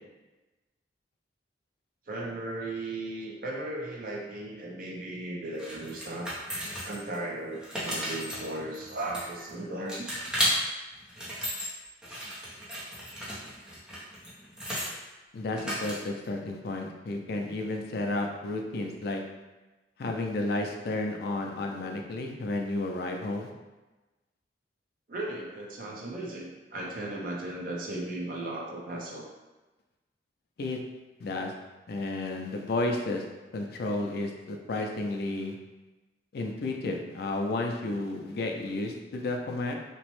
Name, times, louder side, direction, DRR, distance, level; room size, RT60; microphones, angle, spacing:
voice 1, 2.1-6.3 6.8-10.3 12.1-12.4 25.1-29.3, right 2 dB, 50° right, -3 dB, 0.6 m, -36 dB
sound 1, 5.6-7.2 7.5-9.5 9.9-10.5 11.0-11.7 12.0-14.9 15.6-16.3, equal, 5° right, 0.5 m, -34 dB
voice 2, 15.3-19.2 20.0-23.5 30.6-30.8 31.2-31.5 31.9-33.2 33.5-35.5 36.3-39.7, left 2 dB, 60° left, 2 dB, 0.4 m, -32 dB
2.9 x 2.0 x 3.0 m, 1.1 s
head